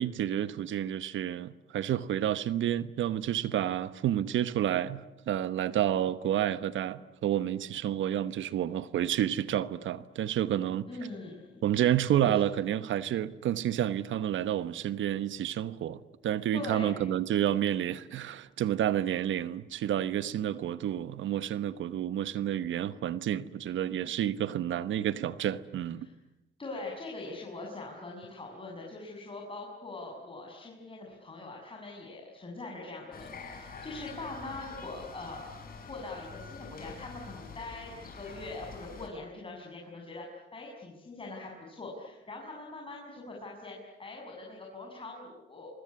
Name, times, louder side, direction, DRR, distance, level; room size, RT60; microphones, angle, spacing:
voice 1, 0.0-10.9 11.6-26.1, right 11 dB, 75° right, 1.2 m, -30 dB
voice 2, 10.9-11.6 12.2-12.4 16.5-16.9 26.0-26.1 26.6-35.5 35.9-45.7, left 2 dB, 25° left, 6.9 m, -42 dB
sound 1, 33.1-39.1, left 4 dB, 45° left, 6.3 m, -46 dB
25.5 x 23.5 x 9.8 m
cardioid pair, 90°, 20 cm